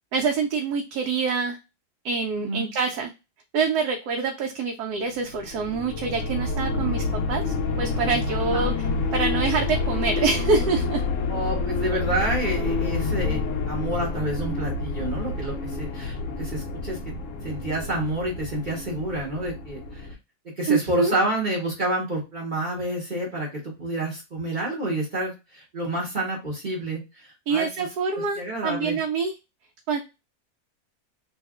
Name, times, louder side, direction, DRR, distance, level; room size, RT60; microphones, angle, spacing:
voice 1, 0.1-1.6 2.0-3.1 3.5-11.0 20.7-21.1 27.5-29.3 29.9-30.0, right 5 dB, 85° right, 2 dB, 1.1 m, -26 dB
voice 2, 2.3-2.7 8.4-8.7 11.3-13.4 13.7-17.0 17.4-20.1 20.6-27.9 28.3-29.0, right 1 dB, 35° right, -2 dB, 0.9 m, -29 dB
sound 1, 5.2-20.1, left 3 dB, 65° left, 0.8 m, -28 dB
2.8 x 2.4 x 3.4 m, 0.26 s
omnidirectional pair, 1.7 m